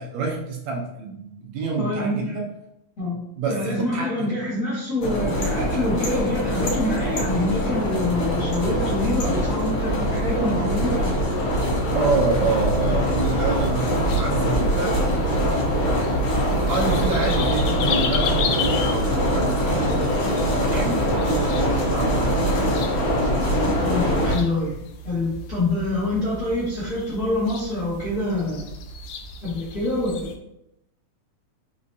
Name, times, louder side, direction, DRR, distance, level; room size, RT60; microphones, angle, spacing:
voice 1, 0.0-2.5 3.4-4.1 11.9-16.1 16.7-22.7, right 4 dB, 75° right, 0 dB, 1.8 m, -28 dB
voice 2, 1.8-2.4 3.0-3.2 3.5-11.1 12.4-12.5 23.8-24.8 25.0-28.6 29.4-30.3, left 2 dB, 40° left, -9 dB, 1.2 m, -26 dB
sound 1, 5.0-24.3, equal, 65° left, 1.4 m, -23 dB
sound 2, 11.9-30.3, left 5 dB, 85° left, 1.4 m, -35 dB
5.3 x 3.0 x 2.7 m, 0.81 s
omnidirectional pair, 3.4 m